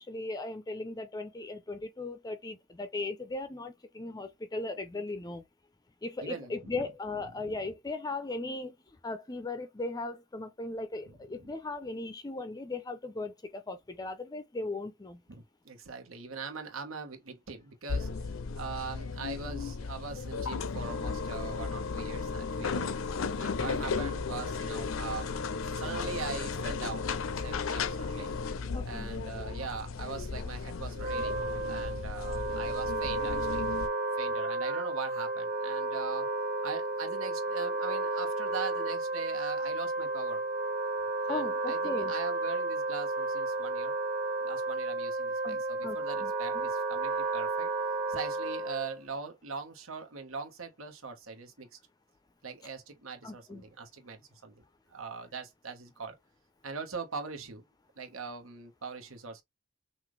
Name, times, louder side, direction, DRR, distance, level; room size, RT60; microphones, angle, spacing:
voice 1, 0.0-5.4 6.0-15.2 28.7-29.1 41.3-42.1 45.4-46.7 53.2-53.6, left 2 dB, 20° left, 0.5 m, -38 dB
voice 2, 6.2-6.8 11.3-11.5 15.3-18.3 18.5-22.9 23.4-28.3 28.8-31.4 31.7-33.6 34.2-36.3 36.6-40.4 41.2-43.9 44.4-47.7 48.1-51.8 52.4-54.6 54.9-56.2 56.6-57.6 58.0-59.4, right 5 dB, 80° right, 1.3 m, -41 dB
sound 1, 17.9-33.9, left 4 dB, 70° left, 0.5 m, -35 dB
Wind instrument woodwind instrument, 30.9-49.0, right 2 dB, 45° right, 2.0 m, -32 dB
5.9 x 2.5 x 3.2 m
head